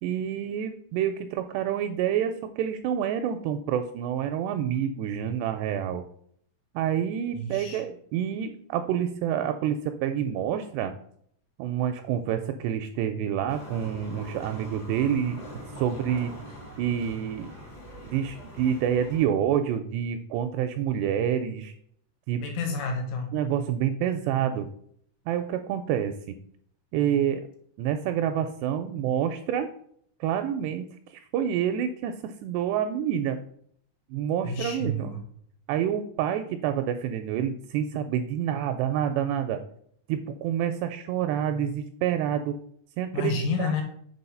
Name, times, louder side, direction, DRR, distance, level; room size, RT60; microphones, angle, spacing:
voice 1, 0.0-6.0 6.8-10.9 11.6-16.4 16.8-17.5 18.0-21.7 22.3-22.4 23.3-24.7 25.3-26.1 26.9-27.4 27.8-29.7 30.2-30.9 31.1-33.4 34.1-35.1 35.7-39.6 40.1-42.6 43.0-43.7, right 9 dB, 85° right, 7 dB, 2.4 m, -28 dB
voice 2, 7.3-7.8 22.4-23.4 34.4-35.2 43.1-43.8, left 3 dB, 85° left, 3 dB, 3.7 m, -30 dB
sound 1, 13.5-19.2, equal, 60° left, 1.0 m, -43 dB
7.0 x 4.3 x 5.5 m, 0.64 s
omnidirectional pair, 5.2 m